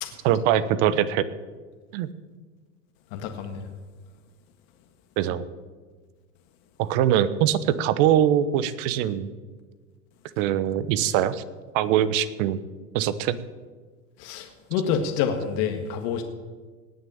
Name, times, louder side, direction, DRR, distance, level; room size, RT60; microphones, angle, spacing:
voice 1, 0.2-1.2 1.9-2.1 5.2-5.4 6.8-9.3 10.4-11.4 11.7-12.6 12.9-13.4, right 10 dB, 55° right, 14 dB, 1.1 m, -22 dB
voice 2, 3.1-3.6 14.2-16.2, left 7 dB, 55° left, 4 dB, 1.8 m, -27 dB
18.5 x 6.6 x 8.8 m, 1.4 s
hypercardioid pair, 115°, 45 cm